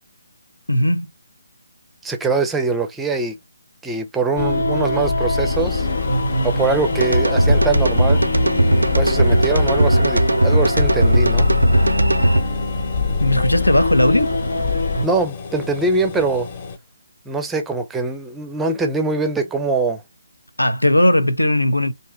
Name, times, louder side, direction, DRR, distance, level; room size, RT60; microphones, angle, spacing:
voice 1, 0.7-1.1 13.2-14.4 20.6-21.9, left 1 dB, 90° left, 0.6 m, -17 dB
voice 2, 2.0-3.4 3.8-5.9 6.4-8.2 9.0-11.5 15.0-16.5 17.3-20.0, right 3 dB, 5° right, 0.5 m, -22 dB
sound 1, 4.4-15.0, left 3 dB, 60° left, 1.0 m, -22 dB
sound 2, 5.5-16.8, left 5 dB, 35° left, 0.9 m, -34 dB
sound 3, 7.0-12.4, right 1 dB, 85° right, 0.5 m, -17 dB
3.2 x 2.7 x 3.6 m
figure-of-eight pair, 150°, 0 cm